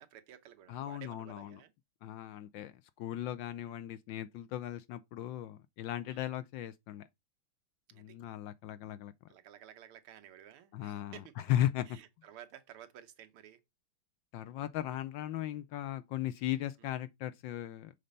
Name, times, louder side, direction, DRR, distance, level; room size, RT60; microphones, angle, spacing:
voice 1, 0.0-1.7 3.6-3.7 6.1-6.3 7.9-8.2 9.3-11.5 11.9-13.6 16.8-16.9, right 10 dB, 90° right, 1.8 m, -54 dB
voice 2, 0.7-1.6 2.0-2.7 3.0-7.0 8.0-9.1 10.7-12.0 14.3-17.9, left 12 dB, 75° left, 1.1 m, -37 dB
6.7 x 4.1 x 5.2 m
omnidirectional pair, 2.4 m